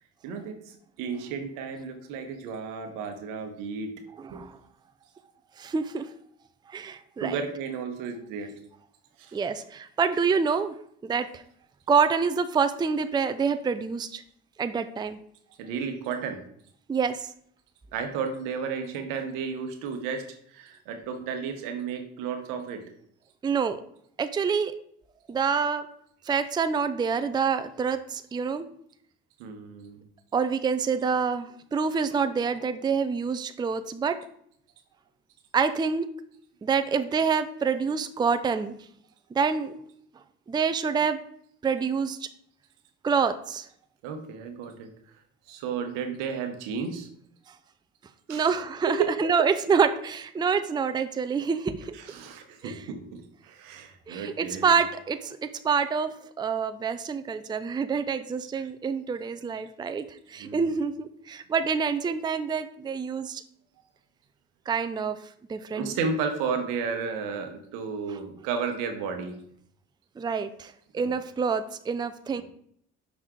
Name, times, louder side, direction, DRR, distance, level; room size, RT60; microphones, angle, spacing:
voice 1, 0.2-3.9 4.3-4.4 7.2-8.5 9.2-9.4 15.6-16.4 17.9-22.8 29.4-30.0 44.0-44.9 45.5-47.1 48.3-48.6 48.8-49.3 51.9-54.8 60.4-60.8 65.7-69.4 71.0-71.1 72.3-72.4, right 5 dB, 85° right, 6 dB, 1.1 m, -33 dB
voice 2, 4.2-4.6 5.6-6.1 6.7-7.4 9.3-10.7 11.0-11.4 11.9-14.2 14.6-15.2 16.9-17.3 23.4-23.8 24.2-24.7 25.3-25.9 26.3-28.7 30.3-34.2 35.5-36.1 36.6-38.7 39.3-39.8 40.5-41.2 41.6-42.3 43.0-43.7 48.3-51.9 52.6-52.8 54.1-55.4 55.6-63.4 64.7-65.2 65.5-66.0 70.2-72.4, right 5 dB, 15° right, 10 dB, 0.4 m, -27 dB
6.0 x 4.2 x 3.7 m, 0.66 s
supercardioid pair, 80°, 31 cm